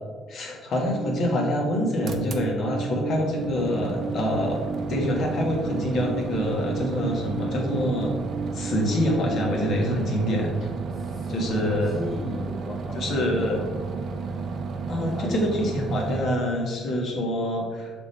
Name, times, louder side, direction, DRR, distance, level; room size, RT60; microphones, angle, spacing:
voice 1, 0.3-4.6 4.9-8.1 8.5-10.7 11.3-11.9 12.9-13.6 14.9-17.9, left 1 dB, 55° left, 0 dB, 1.5 m, -26 dB
Alarm, 0.8-9.8, right 4 dB, 75° right, 0.9 m, -34 dB
sound 1, 2.0-16.2, right 4 dB, 50° right, 0.6 m, -33 dB
voice 2, 10.9-13.9 14.4-14.6 15.0-15.4, left 2 dB, 20° left, 0 dB, 0.6 m, -37 dB
6.0 x 3.7 x 4.2 m, 1.5 s
cardioid pair, 115°, 0 cm